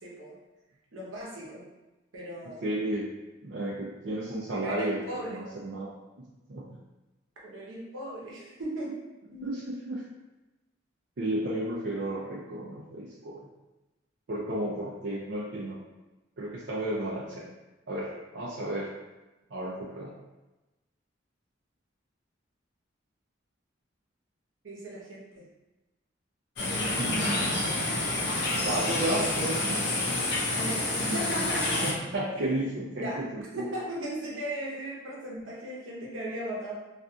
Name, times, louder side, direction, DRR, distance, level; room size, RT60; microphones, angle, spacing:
voice 1, 0.0-0.4 0.9-1.6 2.1-2.6 4.5-5.4 7.4-8.9 9.3-9.5 24.6-25.4 30.5-31.8 32.3-32.5 33.0-33.2 33.6-36.7, right 1 dB, 85° right, -5 dB, 0.8 m, -37 dB
voice 2, 2.4-3.0 3.4-5.9 6.5-6.8 9.4-10.0 11.2-13.4 14.3-15.8 16.4-17.5 17.9-18.9 19.5-20.1 27.0-27.6 28.6-29.8 31.8-33.6, right 1 dB, 60° right, -7 dB, 0.4 m, -33 dB
sound 1, 26.6-31.9, left 2 dB, 55° left, 0.5 m, -28 dB
2.6 x 2.4 x 2.3 m, 1.1 s
head